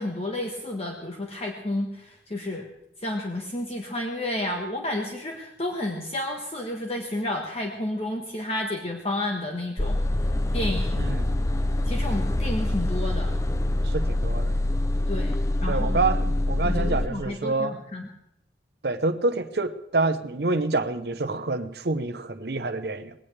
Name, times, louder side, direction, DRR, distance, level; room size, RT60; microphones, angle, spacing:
voice 1, 0.0-2.7 3.0-10.0 10.5-11.1 11.9-13.3 15.1-15.3 15.6-16.0 16.6-18.1, left 1 dB, 35° left, 1 dB, 1.3 m, -31 dB
sound 1, 9.8-17.1, left 1 dB, 15° left, 0.5 m, -25 dB
voice 2, 11.0-11.3 13.8-14.5 15.7-17.8 18.8-23.1, right 3 dB, 65° right, 11 dB, 0.8 m, -27 dB
20.0 x 17.5 x 3.3 m, 0.80 s
head